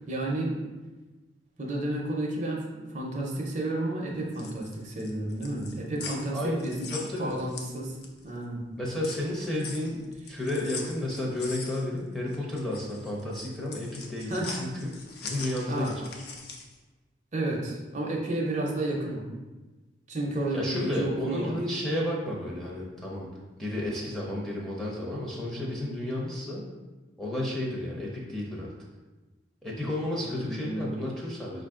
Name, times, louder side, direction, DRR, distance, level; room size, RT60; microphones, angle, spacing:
voice 1, 0.1-0.6 1.6-6.9 7.2-8.0 8.2-8.6 14.3-14.5 15.7-15.9 17.3-19.3 20.1-21.6 30.3-31.0, right 1 dB, 40° right, -1 dB, 0.6 m, -31 dB
sound 1, 4.1-8.3 8.6-16.8, left 4 dB, 55° left, 0.5 m, -42 dB
voice 2, 6.9-7.3 8.8-10.0 10.3-14.9 15.2-16.0 20.5-23.3 23.6-26.6 27.2-28.7 29.6-31.6, left 1 dB, ahead, -4 dB, 0.6 m, -32 dB
5.1 x 2.5 x 3.6 m, 1.2 s
head